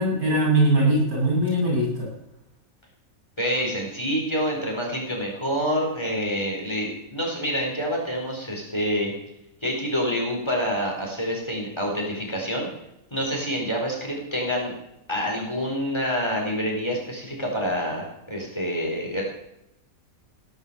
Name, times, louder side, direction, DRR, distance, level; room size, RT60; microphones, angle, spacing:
voice 1, 0.0-2.1, right 1 dB, 80° right, -3 dB, 7.5 m, -21 dB
voice 2, 3.4-9.1 9.6-12.7 13.1-14.7 15.1-19.2, equal, 20° left, -1 dB, 4.7 m, -27 dB
17.5 x 11.5 x 7.1 m, 0.83 s
omnidirectional pair, 1.5 m